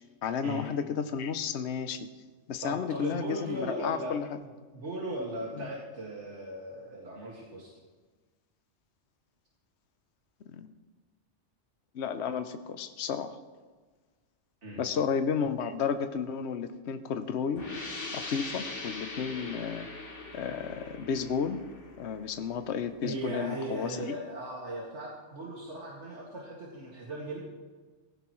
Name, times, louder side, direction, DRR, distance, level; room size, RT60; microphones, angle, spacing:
voice 1, 0.2-2.1 2.5-4.4 5.6-5.7 10.5-10.7 11.9-13.4 14.8-17.7 18.1-19.9 20.3-21.6 22.0-24.2, left 6 dB, 70° left, 9 dB, 1.0 m, -32 dB
voice 2, 2.6-4.2 4.4-7.7 14.6-14.8 23.0-27.4, right 1 dB, 75° right, -4 dB, 2.4 m, -38 dB
sound 1, 17.6-23.0, left 3 dB, 90° left, 2.5 m, -41 dB
18.0 x 16.5 x 3.1 m, 1.4 s
omnidirectional pair, 1.2 m